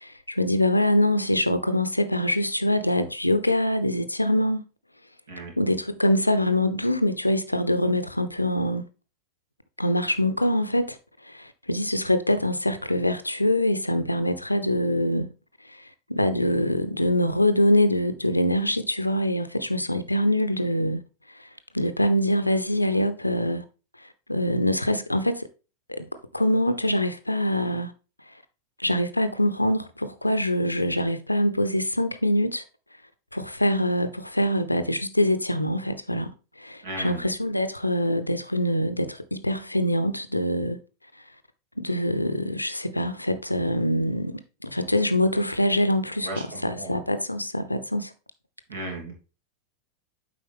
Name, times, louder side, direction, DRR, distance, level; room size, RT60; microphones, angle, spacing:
voice 1, 0.0-4.6 5.6-8.8 9.8-11.0 11.2-15.3 15.7-15.8 16.1-21.0 21.4-21.5 21.7-23.6 24.0-25.5 25.9-26.0 26.3-27.9 28.8-32.6 33.3-36.3 36.6-40.8 41.8-48.1, left 1 dB, 85° left, 0.6 m, -24 dB
voice 2, 36.8-37.3 46.2-47.0 48.7-49.1, right 2 dB, 60° right, 3.1 m, -36 dB
7.8 x 5.0 x 3.4 m
figure-of-eight pair, 90°, 0 cm